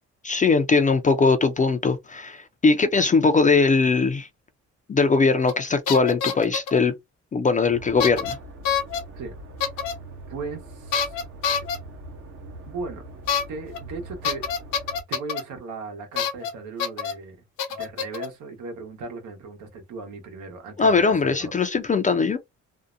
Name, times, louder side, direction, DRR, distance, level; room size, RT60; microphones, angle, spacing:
voice 1, 0.2-4.3 4.9-6.9 7.3-8.4 20.8-22.4, left 4 dB, 25° left, 0.4 m, -20 dB
sound 1, 5.5-5.6 5.9-6.8 8.0-8.3 8.6-9.0 9.6-9.9 10.9-11.8 13.3-13.4 13.7-13.8 14.2-15.4 16.2-16.5 16.8-17.1 17.6-18.3, left 7 dB, 85° left, 0.8 m, -26 dB
sound 2, 7.6-15.0, right 2 dB, 50° right, 0.7 m, -42 dB
voice 2, 10.3-11.2 12.7-13.0 13.5-14.4 15.1-21.5, right 4 dB, 85° right, 1.0 m, -37 dB
2.6 x 2.1 x 2.5 m
cardioid pair, 90°, 30 cm